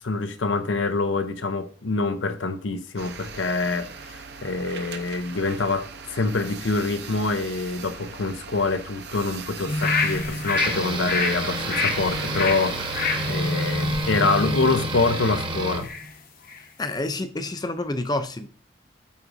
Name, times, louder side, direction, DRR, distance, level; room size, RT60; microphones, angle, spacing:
voice 1, 0.0-13.0 13.3-15.9, left 3 dB, 85° left, 0.7 m, -26 dB
sound 1, 3.0-13.3, right 5 dB, 60° right, 0.7 m, -39 dB
sound 2, 9.7-16.1 16.5-16.6, left 3 dB, 45° left, 0.9 m, -27 dB
sound 3, 10.6-15.9, right 2 dB, 25° right, 1.0 m, -31 dB
voice 2, 16.8-18.5, left 2 dB, 20° left, 0.5 m, -28 dB
12.5 x 4.8 x 2.6 m
head